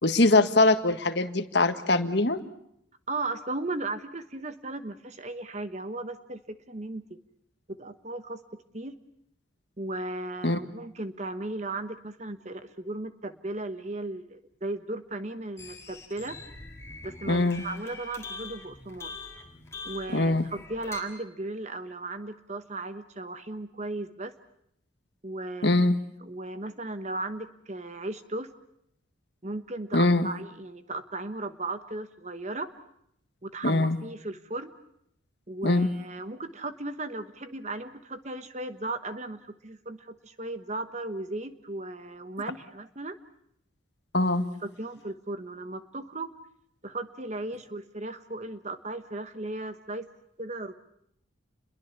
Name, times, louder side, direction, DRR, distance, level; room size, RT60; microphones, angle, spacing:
voice 1, 0.0-2.4 10.4-10.6 17.3-17.6 20.1-20.4 25.6-26.0 29.9-30.3 33.6-34.0 35.6-35.9 44.1-44.4, left 2 dB, 55° left, 9 dB, 1.6 m, -22 dB
voice 2, 3.1-7.2 7.8-8.4 8.7-8.9 9.8-16.4 17.0-19.1 19.8-24.3 25.2-25.8 26.2-28.5 29.4-32.7 33.4-34.7 35.5-43.2 44.6-46.3 46.8-50.1 50.4-50.7, right 2 dB, 35° right, 10 dB, 1.2 m, -36 dB
sound 1, 15.6-21.0, left 3 dB, 15° left, 3.9 m, -43 dB
29.5 x 22.5 x 7.1 m, 0.74 s
head